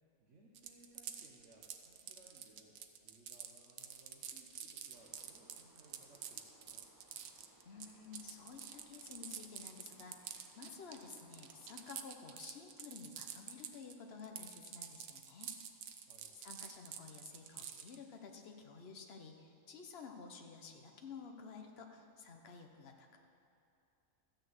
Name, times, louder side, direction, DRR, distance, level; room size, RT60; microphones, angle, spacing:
voice 1, 0.2-6.9 16.0-16.4, right 2 dB, 60° right, -3 dB, 1.6 m, -64 dB
sound 1, 0.5-13.9 14.2-18.0, right 9 dB, 80° right, 1.1 m, -48 dB
sound 2, 4.9-12.0, right 1 dB, 15° right, 1.0 m, -67 dB
voice 2, 7.6-15.5 15.9-16.0 16.3-23.2, left 5 dB, 50° left, 4 dB, 1.2 m, -52 dB
13.0 x 6.7 x 8.0 m, 2.6 s
omnidirectional pair, 1.4 m